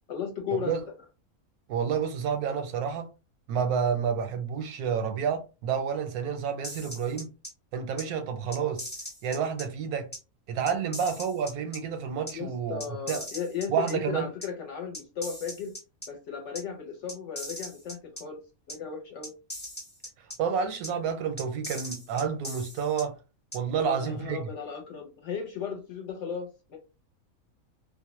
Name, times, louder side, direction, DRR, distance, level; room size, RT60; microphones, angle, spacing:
voice 1, 0.1-0.8 12.3-15.7 16.1-18.4 18.7-19.3 23.7-26.8, left 6 dB, 65° left, 0.8 m, -35 dB
voice 2, 1.7-3.1 3.5-7.3 7.7-8.9 9.2-10.1 10.5-12.8 13.1-13.2 13.7-14.3 20.4-23.1 23.5-24.5, right 7 dB, 90° right, 1.1 m, -29 dB
sound 1, 6.6-7.5 8.0-8.1 8.5-9.6 10.1-10.2 10.7-11.8 12.3-12.4 12.8-13.9 14.4-14.5 14.9-16.1 16.5-16.6 17.1-18.2 18.7-18.8 19.2-20.4 20.8-20.9 21.4-23.0 23.5-23.6, left 1 dB, 15° left, 0.4 m, -39 dB
2.5 x 2.1 x 2.9 m
omnidirectional pair, 1.5 m